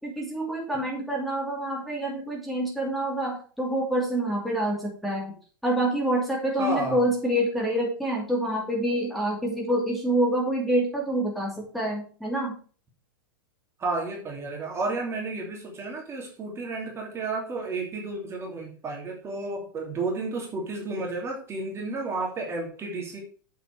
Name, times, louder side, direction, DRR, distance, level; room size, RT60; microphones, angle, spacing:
voice 1, 0.0-5.3 5.6-12.5, right 1 dB, ahead, -4 dB, 2.7 m, -27 dB
voice 2, 6.6-7.0 13.8-23.2, right 3 dB, 25° right, 0 dB, 2.9 m, -32 dB
7.6 x 6.7 x 4.7 m, 0.41 s
figure-of-eight pair, 100°, 11 cm